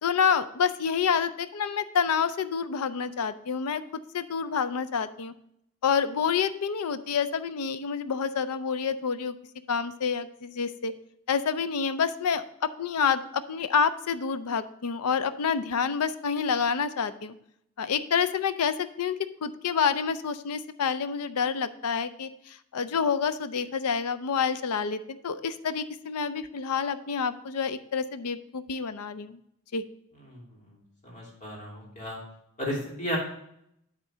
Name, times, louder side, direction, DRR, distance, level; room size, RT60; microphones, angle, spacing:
voice 1, 0.0-5.3 5.8-9.3 9.7-10.9 11.3-12.4 12.8-17.3 17.8-19.2 19.4-29.4 29.7-29.8, left 6 dB, 90° left, 12 dB, 0.5 m, -28 dB
voice 2, 30.3-30.8 31.0-32.2 32.6-33.2, equal, 35° left, -4 dB, 2.8 m, -34 dB
9.5 x 3.7 x 5.5 m, 0.74 s
head